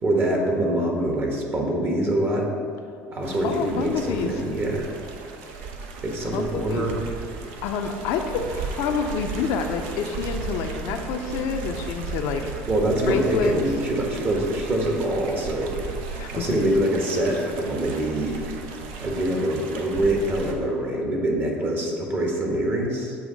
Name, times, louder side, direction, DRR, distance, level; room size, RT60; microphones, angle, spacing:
voice 1, 0.0-2.5 3.1-4.9 6.0-7.0 12.7-15.8 16.3-18.3 19.0-23.2, right 1 dB, 40° right, 0 dB, 1.4 m, -24 dB
sound 1, 3.2-20.5, right 4 dB, 75° right, 0.6 m, -35 dB
voice 2, 3.4-4.3 6.3-6.9 7.6-12.5 13.1-13.6 16.2-16.5, left 6 dB, 65° left, 5 dB, 0.5 m, -28 dB
7.9 x 2.8 x 5.2 m, 2.4 s
hypercardioid pair, 70°, 5 cm